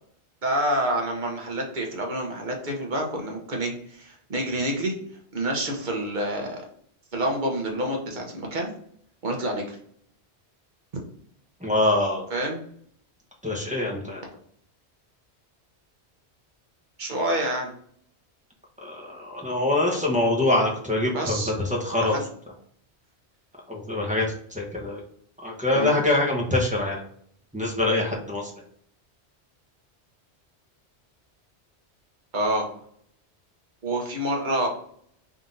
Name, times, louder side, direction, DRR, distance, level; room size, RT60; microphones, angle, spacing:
voice 1, 0.4-4.9 5.3-6.6 7.1-8.7 9.2-9.8 12.3-12.6 17.0-17.7 21.1-21.5 22.0-22.3 25.7-26.0 32.3-32.7 33.8-34.7, right 1 dB, 45° right, 1 dB, 1.0 m, -27 dB
voice 2, 11.6-12.3 13.4-14.2 18.8-22.2 23.7-24.2 24.5-25.0 25.4-27.0 27.5-28.5, left 2 dB, 10° right, -2 dB, 0.8 m, -24 dB
3.7 x 2.7 x 3.7 m, 0.62 s
omnidirectional pair, 1.1 m